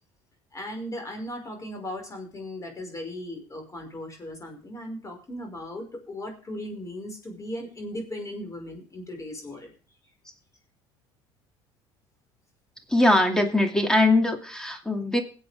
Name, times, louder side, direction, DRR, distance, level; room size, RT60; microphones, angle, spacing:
voice 1, 0.5-9.7, left 1 dB, 25° left, 4 dB, 5.4 m, -37 dB
voice 2, 12.9-15.2, left 2 dB, 5° left, 5 dB, 2.4 m, -21 dB
20.5 x 8.3 x 3.6 m, 0.38 s
supercardioid pair, 80°, 12 cm